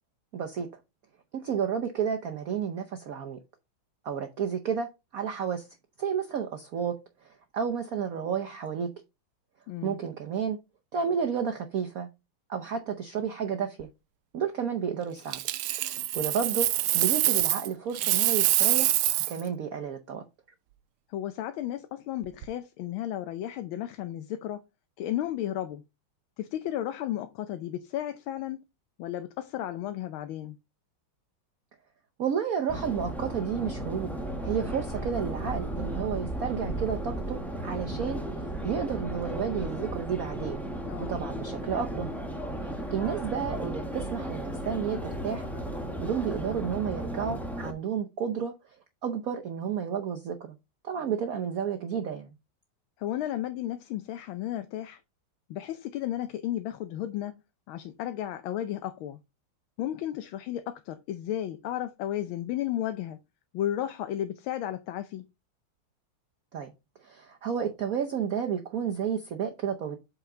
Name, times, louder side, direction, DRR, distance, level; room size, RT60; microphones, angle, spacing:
voice 1, 0.3-0.7 1.3-3.4 4.0-5.7 6.0-8.9 9.8-10.6 10.9-12.1 12.5-13.9 14.3-15.4 15.8-18.9 19.3-20.3 32.2-34.1 34.4-40.6 41.1-42.1 42.6-45.5 46.0-48.5 49.0-50.6 50.8-52.3 66.5-66.7 67.0-70.0, right 7 dB, 60° right, 0.9 m, -31 dB
voice 2, 9.7-10.0 21.1-24.6 25.0-25.8 26.4-28.6 29.0-30.6 40.8-41.1 53.0-55.0 55.5-57.4 57.7-59.2 59.8-63.2 63.5-65.2, left 12 dB, 75° left, 1.5 m, -33 dB
Coin (dropping), 15.3-17.7 17.9-19.4 22.2-22.4, right 15 dB, 80° right, 1.4 m, -25 dB
Subway metro underground, 32.7-47.7, right 1 dB, ahead, 0.6 m, -35 dB
7.9 x 4.6 x 3.8 m
omnidirectional pair, 2.3 m